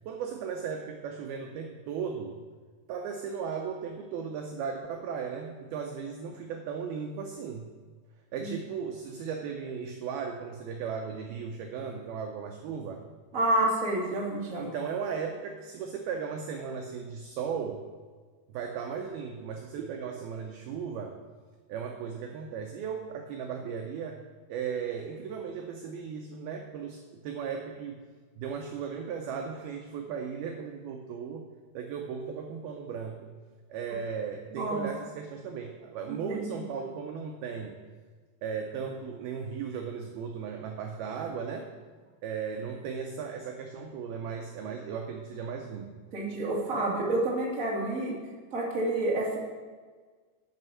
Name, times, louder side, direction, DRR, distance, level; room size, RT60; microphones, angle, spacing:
voice 1, 0.0-2.4 2.9-7.7 8.3-13.1 14.6-17.9 18.5-21.2 21.7-24.2 24.5-28.0 28.4-31.4 31.7-33.3 33.7-37.8 38.4-41.7 42.2-45.9, right 6 dB, 80° right, 3 dB, 2.2 m, -36 dB
voice 2, 13.3-14.7 34.5-34.9 36.1-36.4 46.1-48.1 48.5-49.4, right 2 dB, 45° right, -4 dB, 1.0 m, -29 dB
9.8 x 6.7 x 6.2 m, 1.5 s
omnidirectional pair, 5.2 m